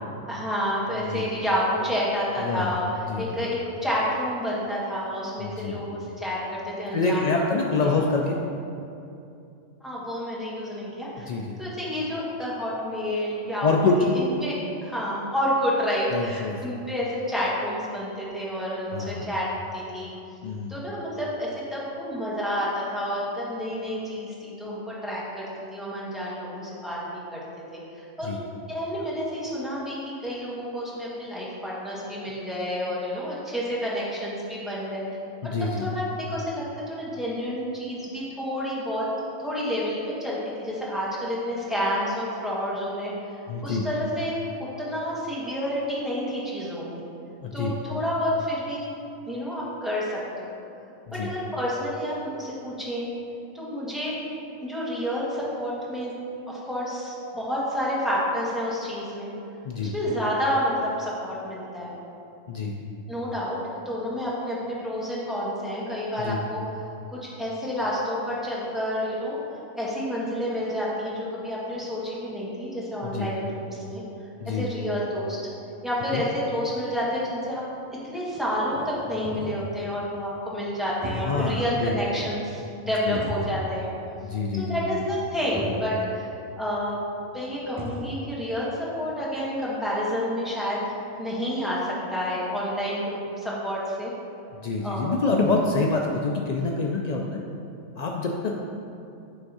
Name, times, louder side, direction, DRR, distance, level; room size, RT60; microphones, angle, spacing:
voice 1, 0.3-2.9 3.2-7.5 7.8-8.0 9.8-11.3 11.6-13.9 14.1-14.5 14.8-19.5 19.7-20.1 20.7-25.4 25.7-27.4 28.0-28.4 28.7-35.1 35.8-39.1 39.4-43.1 43.6-44.3 44.8-47.0 47.5-48.9 49.2-50.5 51.1-53.1 53.5-54.2 54.6-56.1 56.5-59.3 59.8-61.9 63.1-66.6 67.1-69.4 69.7-74.0 74.4-75.4 75.8-77.6 78.0-83.9 84.5-86.3 86.6-87.0 87.3-94.1 94.8-95.2, equal, ahead, -8 dB, 1.5 m, -29 dB
voice 2, 2.4-2.8 3.1-3.4 5.4-5.8 6.9-8.4 11.2-11.6 13.6-14.0 16.1-16.6 18.9-19.3 20.4-20.7 28.2-28.4 35.4-35.9 43.5-43.9 47.4-47.7 51.1-51.3 59.6-59.9 62.5-62.8 66.2-66.4 73.0-73.3 74.4-74.7 76.1-76.2 81.2-82.0 83.1-83.2 84.2-84.9 94.6-97.4 98.0-98.5, left 3 dB, 65° left, 0 dB, 0.4 m, -26 dB
sound 1, 76.8-76.9 77.2-77.3 78.0-78.1 78.3-79.8 80.8-81.7 82.0-82.1 83.1-84.0 84.3-84.4 85.2-85.3 85.5-85.9 87.2-87.3 87.5-88.1, right 2 dB, 25° right, 0.5 m, -35 dB
9.3 x 3.5 x 5.4 m, 2.7 s
omnidirectional pair, 1.3 m